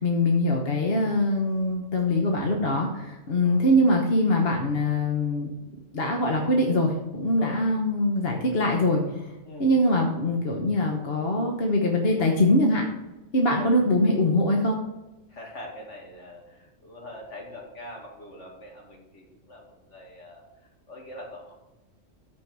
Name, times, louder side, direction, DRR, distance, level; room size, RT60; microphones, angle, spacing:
voice 1, 0.0-5.5 5.9-9.2 9.6-12.8 13.3-14.8, left 1 dB, 50° left, 1 dB, 1.3 m, -23 dB
voice 2, 3.3-3.6 7.4-7.6 9.4-9.7 13.6-13.7 15.3-20.4 20.9-21.5, left 1 dB, 70° left, -1 dB, 2.6 m, -43 dB
13.5 x 5.1 x 4.7 m, 1.0 s
omnidirectional pair, 1.3 m